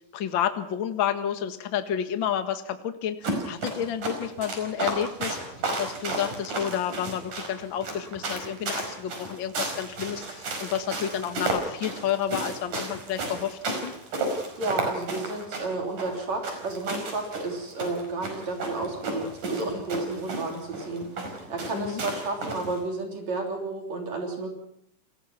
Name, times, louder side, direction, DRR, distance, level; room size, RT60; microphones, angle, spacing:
voice 1, 0.1-5.4 5.8-13.9 21.7-22.0, left 9 dB, 45° left, 8 dB, 2.1 m, -30 dB
sound 1, 3.2-22.8, right 2 dB, 85° right, 6.6 m, -33 dB
voice 2, 14.6-24.5, right 3 dB, 60° right, 2 dB, 4.6 m, -32 dB
29.5 x 21.0 x 5.9 m, 0.74 s
omnidirectional pair, 3.5 m